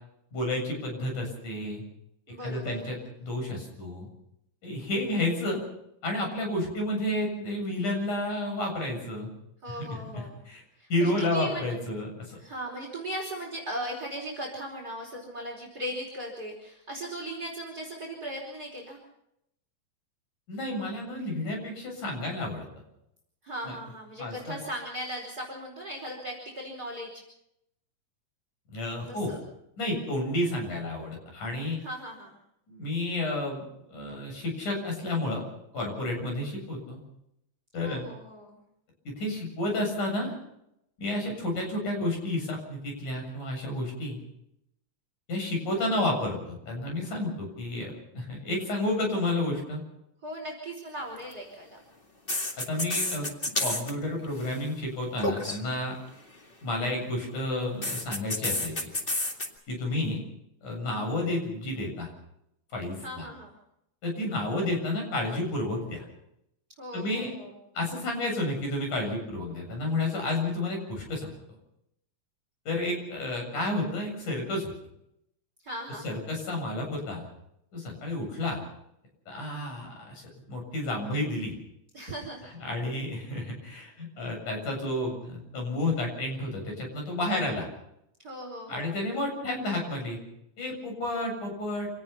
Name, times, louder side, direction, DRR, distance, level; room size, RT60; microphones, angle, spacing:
voice 1, 0.3-1.8 2.4-4.1 4.6-5.6 6.0-9.3 9.7-10.6 10.9-12.4 20.5-22.7 23.7-23.8 24.2-24.6 28.7-29.3 29.8-31.8 32.7-33.6 33.9-35.4 35.7-37.0 37.7-38.0 39.1-40.3 41.0-44.2 45.3-49.8 52.6-53.3 53.6-55.9 56.6-58.9 59.7-60.2 60.6-62.1 62.7-63.3 64.0-66.0 66.9-67.3 67.8-71.3 72.7-74.7 76.0-77.3 77.7-78.6 79.3-81.5 82.6-87.7 88.7-90.2 90.6-91.9, left 1 dB, 75° left, 2 dB, 9.0 m, -31 dB
voice 2, 2.3-2.9 9.6-10.4 10.8-11.6 12.4-19.0 23.4-27.1 29.1-29.4 31.8-32.4 37.8-38.6 50.2-51.8 63.0-63.5 66.8-67.5 75.6-76.2 81.9-82.5 88.2-88.9, right 1 dB, 30° right, 0 dB, 5.0 m, -38 dB
sound 1, 51.1-51.3 52.3-53.9 54.2-54.6 55.2-55.6 57.8-59.5, left 1 dB, 20° left, 2.0 m, -30 dB
27.0 x 18.5 x 5.7 m, 0.79 s
omnidirectional pair, 3.6 m